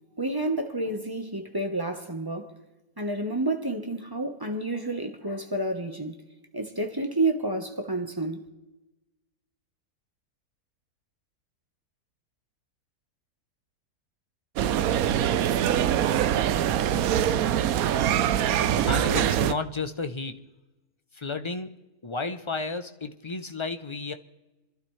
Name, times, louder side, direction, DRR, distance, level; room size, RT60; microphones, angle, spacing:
voice 1, 0.2-2.5 3.0-6.2 6.5-8.4, right 2 dB, 15° right, 1.0 m, -29 dB
sound 1, 14.6-19.5, right 10 dB, 70° right, 1.0 m, -23 dB
voice 2, 18.9-20.5 21.1-21.7 22.0-24.1, left 3 dB, 45° left, 0.4 m, -32 dB
28.0 x 12.0 x 3.2 m
omnidirectional pair, 1.6 m